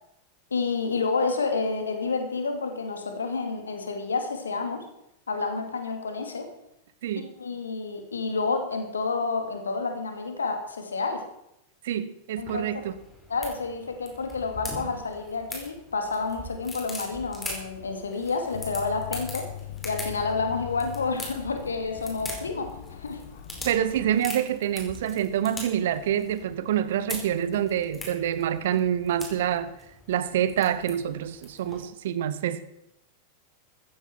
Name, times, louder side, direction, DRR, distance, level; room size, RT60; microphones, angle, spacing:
voice 1, 0.5-4.8 5.3-6.5 7.4-11.2 12.4-12.9 13.3-19.5 19.8-23.2, left 4 dB, 70° left, 5 dB, 2.5 m, -29 dB
voice 2, 11.8-12.9 23.6-29.7 30.1-32.6, right 10 dB, 55° right, 14 dB, 1.0 m, -26 dB
sound 1, 12.4-31.8, left 1 dB, 10° left, 4.9 m, -42 dB
sound 2, 18.5-24.2, left 11 dB, 55° left, 1.1 m, -41 dB
15.0 x 14.5 x 4.5 m, 0.80 s
figure-of-eight pair, 90°, 0 cm